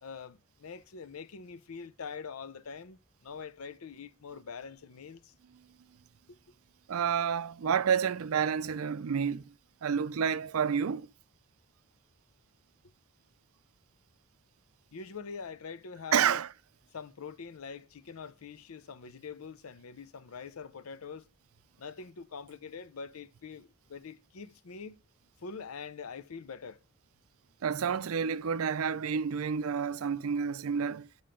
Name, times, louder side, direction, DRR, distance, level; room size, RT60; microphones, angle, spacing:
voice 1, 0.0-5.3 6.3-6.4 14.9-16.4 16.9-21.3 21.8-25.0 25.4-26.8, left 5 dB, 90° left, 0.6 m, -44 dB
voice 2, 6.9-9.4 9.8-11.1 16.1-16.5 27.6-31.1, right 7 dB, 80° right, 0.4 m, -29 dB
7.6 x 5.6 x 5.0 m
head